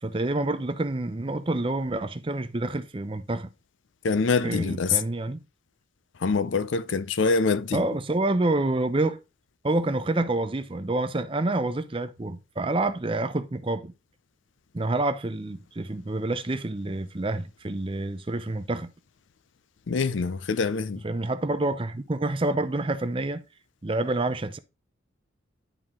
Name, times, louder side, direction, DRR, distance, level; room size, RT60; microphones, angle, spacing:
voice 1, 0.0-3.5 4.4-5.4 7.7-9.2 9.6-13.9 14.7-18.9 21.0-23.4 23.8-24.6, right 2 dB, 25° right, 0.6 m, -28 dB
voice 2, 4.0-5.0 6.2-7.8 19.9-21.0, left 4 dB, 65° left, 0.5 m, -25 dB
10.5 x 4.5 x 3.7 m
head